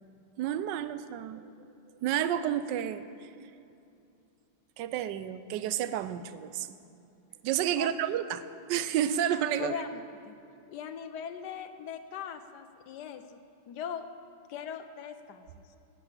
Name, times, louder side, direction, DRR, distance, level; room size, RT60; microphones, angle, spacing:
voice 1, 0.4-1.4 2.0-3.3 4.8-6.7 7.4-8.4 8.7-9.8, right 10 dB, 70° right, 13 dB, 1.1 m, -30 dB
voice 2, 9.6-10.4 10.7-13.4 13.7-14.1 14.5-15.5, left 8 dB, 70° left, 9 dB, 1.0 m, -40 dB
11.5 x 8.7 x 8.7 m, 2.6 s
omnidirectional pair, 2.3 m